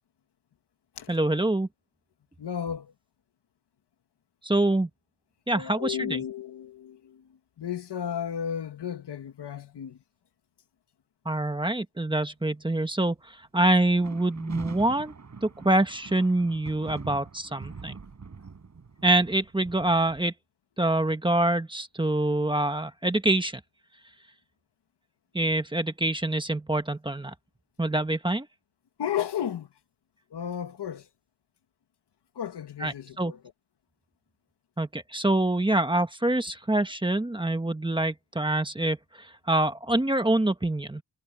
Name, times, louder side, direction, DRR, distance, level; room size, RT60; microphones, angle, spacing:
voice 1, 1.1-1.7 4.4-4.9 5.5-6.2 11.2-15.1 15.4-17.9 19.0-20.3 20.8-23.6 25.3-27.3 27.8-28.5 32.8-33.3 34.8-41.0, right 2 dB, 10° right, 1.3 m, -25 dB
voice 2, 2.4-2.9 5.5-7.2 7.6-10.0 29.0-29.7 30.3-31.0 32.3-33.4, left 9 dB, 70° left, 1.6 m, -33 dB
sound 1, 13.9-20.2, right 5 dB, 40° right, 6.3 m, -44 dB
wide cardioid pair, 150°, 43 cm